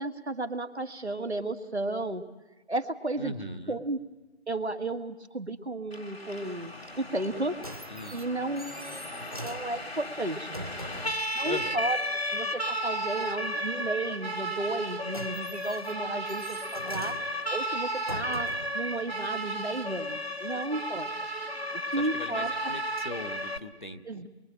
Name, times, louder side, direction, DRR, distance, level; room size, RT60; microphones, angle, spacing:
voice 1, 0.0-2.2 2.7-3.3 3.7-4.0 4.5-7.6 8.1-9.1 9.4-10.6 11.3-12.0 12.3-17.2 17.5-21.1 21.9-22.5 24.0-24.3, right 2 dB, 75° right, 7 dB, 1.8 m, -33 dB
voice 2, 3.2-3.8 7.9-8.2 11.4-11.8 22.0-24.3, left 1 dB, 45° left, 8 dB, 1.4 m, -39 dB
Siren, 5.9-23.6, equal, 65° left, 1.8 m, -34 dB
sound 1, 7.2-11.3 14.6-18.8 19.6-19.7, equal, 35° right, 0.8 m, -43 dB
26.5 x 23.0 x 8.8 m, 1.1 s
figure-of-eight pair, 170°, 33 cm